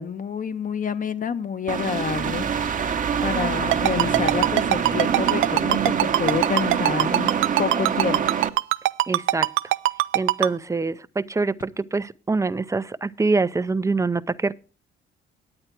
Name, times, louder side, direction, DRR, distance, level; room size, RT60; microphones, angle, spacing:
voice 1, 0.0-2.5 3.2-7.3 7.6-8.3, left 7 dB, 45° left, 1.0 m, -28 dB
sound 1, 1.7-8.5, right 7 dB, 40° right, 1.0 m, -25 dB
Ringtone, 3.7-10.5, right 17 dB, 90° right, 0.4 m, -20 dB
voice 2, 9.1-9.5 10.1-14.5, right 3 dB, 15° right, 0.6 m, -25 dB
9.8 x 8.8 x 4.5 m
cardioid pair, 90°, 20 cm